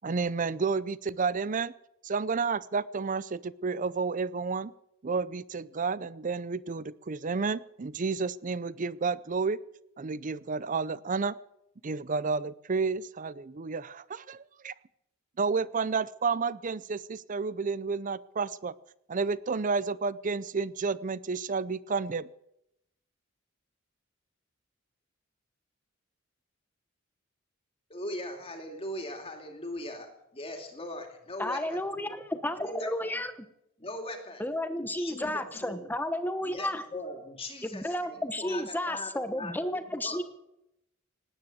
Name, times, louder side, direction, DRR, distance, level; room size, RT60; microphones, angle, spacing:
voice 1, 0.0-1.7 2.0-4.7 5.0-9.6 10.0-11.3 11.8-14.7 15.4-18.7 19.1-22.3, right 4 dB, 40° right, 19 dB, 0.5 m, -31 dB
voice 2, 27.9-32.1 32.6-33.2 33.8-34.4 34.8-35.9 36.4-40.2, left 1 dB, 30° left, 4 dB, 2.5 m, -40 dB
voice 3, 31.4-33.3 34.4-36.8 37.6-40.2, left 1 dB, 10° left, 10 dB, 1.1 m, -32 dB
19.0 x 9.7 x 7.8 m, 0.83 s
head